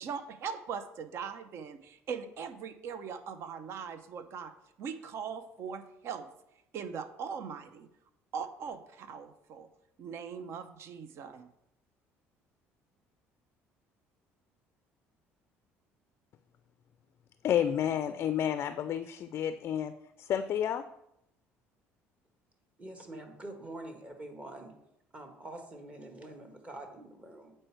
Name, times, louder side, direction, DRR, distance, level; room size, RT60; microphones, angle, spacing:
voice 1, 0.0-6.3 6.7-7.9 8.3-9.7 10.0-11.5, right 6 dB, 60° right, 11 dB, 0.7 m, -40 dB
voice 2, 17.4-20.8, left 9 dB, 50° left, 11 dB, 0.3 m, -30 dB
voice 3, 22.8-24.7 25.1-27.5, right 1 dB, 25° right, 4 dB, 1.3 m, -45 dB
7.8 x 4.4 x 4.5 m, 0.79 s
cardioid pair, 105°, 5 cm